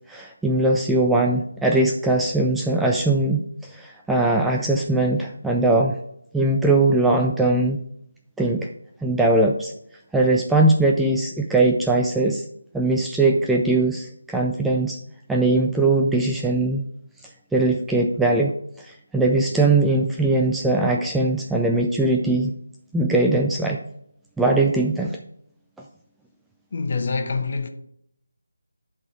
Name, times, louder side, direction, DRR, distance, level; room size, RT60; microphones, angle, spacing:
voice 1, 0.1-6.0 6.3-7.8 8.4-8.7 9.0-9.7 10.1-12.4 12.7-15.0 15.3-16.8 17.5-18.5 18.8-22.5 22.9-23.8 24.4-25.2, right 2 dB, 5° right, 0.4 m, -20 dB
voice 2, 26.7-27.7, left 4 dB, 40° left, 1.1 m, -25 dB
10.5 x 3.9 x 4.9 m
figure-of-eight pair, 160°, 0 cm